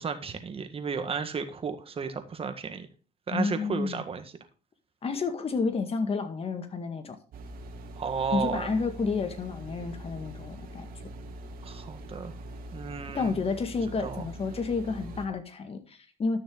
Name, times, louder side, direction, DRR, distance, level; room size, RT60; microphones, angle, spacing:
voice 1, 0.0-2.9 3.3-4.2 8.0-8.7 11.6-12.3 12.7-13.4 14.0-14.2, right 5 dB, 35° right, 7 dB, 1.7 m, -33 dB
voice 2, 3.3-4.0 5.0-7.2 8.3-10.9 13.1-16.4, left 4 dB, 35° left, 7 dB, 2.0 m, -30 dB
sound 1, 7.3-15.3, right 1 dB, 60° right, 1.9 m, -43 dB
12.0 x 6.6 x 3.9 m, 0.36 s
cardioid pair, 110°, 17 cm